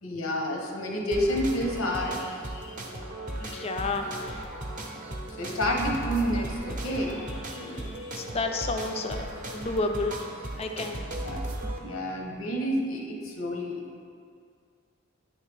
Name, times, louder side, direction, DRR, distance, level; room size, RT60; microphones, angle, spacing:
voice 1, 0.0-2.9 3.4-3.6 5.3-8.3 11.2-11.4 11.8-13.9, equal, 90° left, 0 dB, 0.8 m, -30 dB
sound 1, 1.1-11.8, right 1 dB, 40° right, 0.6 m, -36 dB
voice 2, 3.4-4.5 7.6-10.3 10.5-11.0, left 2 dB, 30° left, 5 dB, 0.4 m, -32 dB
9.0 x 3.2 x 3.3 m, 2.3 s
head